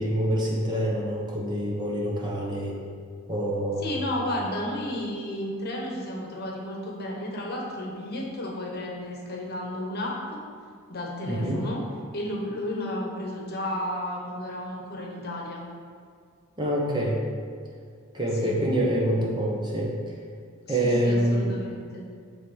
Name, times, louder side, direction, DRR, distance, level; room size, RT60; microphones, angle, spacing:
voice 1, 0.0-2.8 3.3-4.0 11.3-11.6 16.6-17.2 18.1-20.1 20.7-21.6, right 1 dB, 20° right, -3 dB, 0.9 m, -26 dB
voice 2, 3.8-10.4 10.9-11.8 12.1-15.6 18.4-18.5 20.7-22.0, left 1 dB, 45° left, -1 dB, 1.1 m, -32 dB
7.1 x 3.5 x 6.3 m, 2.1 s
head